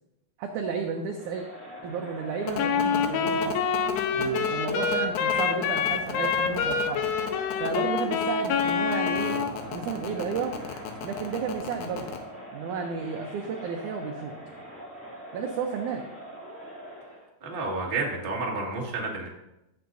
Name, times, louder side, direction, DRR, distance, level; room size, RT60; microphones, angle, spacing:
voice 1, 0.4-1.4 1.8-3.6 4.1-7.0 7.6-10.6 11.0-12.1 12.5-14.3 15.3-16.1, right 5 dB, 85° right, 3 dB, 1.7 m, -32 dB
Crowd, 1.1-17.3, equal, 5° left, 1.1 m, -43 dB
sound 1, 2.5-12.2, left 8 dB, 75° left, 2.6 m, -35 dB
Wind instrument woodwind instrument, 2.6-9.5, left 6 dB, 90° left, 2.7 m, -26 dB
voice 2, 17.4-19.3, right 3 dB, 30° right, -3 dB, 0.9 m, -30 dB
15.5 x 7.8 x 2.7 m, 0.90 s
omnidirectional pair, 4.5 m